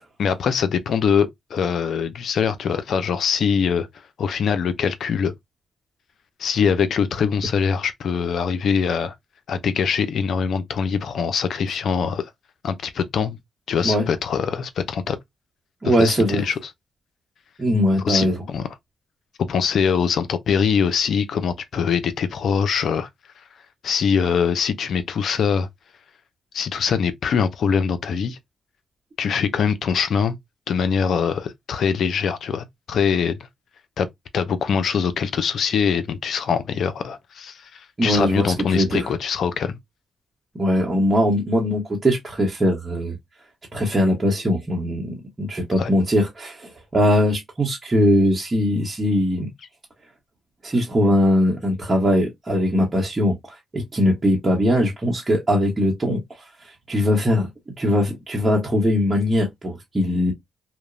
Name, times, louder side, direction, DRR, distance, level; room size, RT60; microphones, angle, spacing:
voice 1, 0.2-3.9 4.2-5.3 6.4-9.1 9.5-12.3 12.6-13.4 13.7-15.2 15.8-16.5 18.0-18.7 19.5-23.1 23.8-25.7 26.5-28.4 29.2-30.4 30.7-33.4 34.0-34.1 34.3-39.8 45.8-45.9, left 6 dB, 70° left, 0.4 m, -23 dB
voice 2, 15.8-16.5 17.6-18.4 38.0-39.1 40.5-43.2 43.7-49.5 50.6-53.4 53.7-56.2 56.9-57.5 57.8-60.3, equal, 30° right, 0.8 m, -20 dB
2.8 x 2.1 x 2.5 m
cardioid pair, 70°, 0 cm